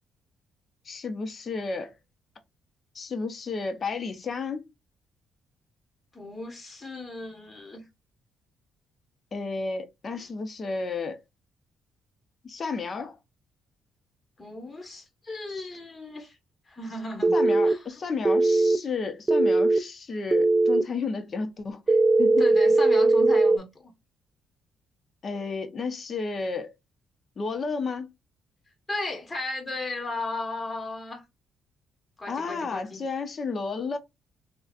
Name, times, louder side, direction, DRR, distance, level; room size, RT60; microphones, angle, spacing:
voice 1, 0.8-1.9 2.9-4.6 9.3-11.2 12.4-13.2 17.3-22.5 25.2-26.7 27.4-28.1 32.3-34.0, left 4 dB, 45° left, 0.8 m, -32 dB
voice 2, 6.1-7.8 14.4-16.4 16.7-17.8 22.4-23.9 28.9-31.2 32.2-33.0, left 2 dB, 25° left, 1.3 m, -35 dB
sound 1, 17.2-17.7 18.2-18.8 19.3-19.8 20.3-20.8 21.9-23.6, right 3 dB, 25° right, 0.3 m, -20 dB
3.9 x 2.4 x 2.4 m
cardioid pair, 90°, 0 cm